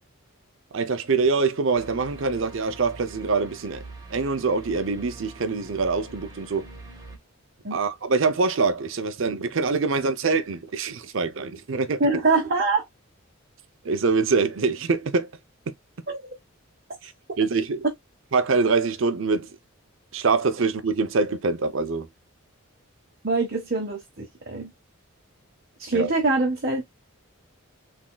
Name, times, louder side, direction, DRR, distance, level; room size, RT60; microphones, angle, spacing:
voice 1, 0.7-3.8 4.1-6.7 7.7-12.0 13.8-15.3 17.0-17.8 18.3-19.6 20.1-22.1 25.9-26.1, right 4 dB, 60° right, 0.6 m, -24 dB
sound 1, 1.7-7.2, right 2 dB, 15° right, 1.3 m, -44 dB
voice 2, 12.0-12.8 16.1-16.3 23.2-24.7 25.8-26.8, right 3 dB, 45° right, 1.0 m, -24 dB
3.9 x 3.6 x 2.2 m
head